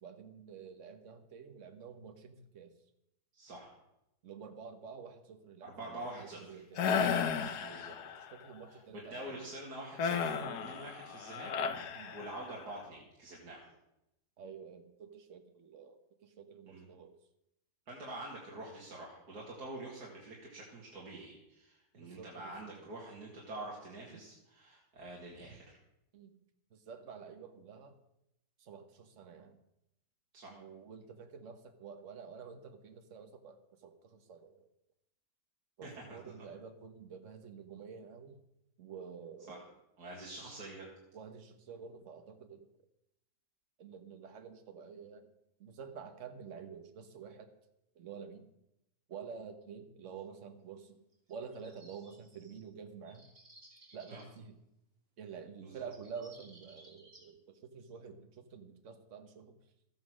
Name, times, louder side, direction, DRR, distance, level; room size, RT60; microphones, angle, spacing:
voice 1, 0.0-2.7 4.2-6.9 7.6-7.8 8.2-9.6 11.9-12.2 14.4-17.2 21.9-22.9 24.1-24.2 26.1-26.3 26.7-28.0 28.6-29.6 30.5-34.7 35.8-38.4 38.8-39.7 41.1-42.7 43.8-45.3 45.6-47.5 47.9-48.5 49.1-51.0 51.3-53.3 53.9-54.6 55.2-59.5, right 6 dB, 50° right, 7 dB, 1.5 m, -49 dB
voice 2, 3.3-3.8 5.6-7.2 7.6-7.9 8.7-11.5 11.8-13.7 16.7-16.8 17.9-25.8 30.3-30.6 35.8-36.3 39.5-39.6 40.0-40.9 54.1-54.2 55.6-55.8, right 1 dB, 70° right, -4 dB, 2.9 m, -46 dB
sound 1, 6.8-8.3 10.0-12.7, left 6 dB, 75° left, 1.5 m, -34 dB
sound 2, 51.1-52.6 53.0-54.4 55.5-55.6 55.9-57.3, right 2 dB, 35° right, 2.9 m, -59 dB
13.5 x 9.4 x 6.3 m, 0.84 s
omnidirectional pair, 1.7 m